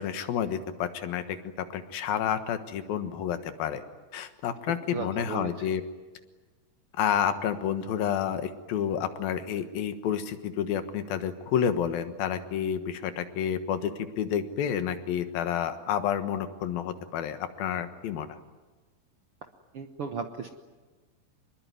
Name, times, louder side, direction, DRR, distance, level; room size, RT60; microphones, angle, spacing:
voice 1, 0.0-1.4 1.7-3.8 4.1-5.8 7.0-13.9 14.2-18.4, left 9 dB, 85° left, 9 dB, 3.2 m, -30 dB
voice 2, 4.9-5.7 19.7-20.5, right 5 dB, 65° right, 5 dB, 1.4 m, -35 dB
25.5 x 22.0 x 9.5 m, 1.3 s
omnidirectional pair, 4.1 m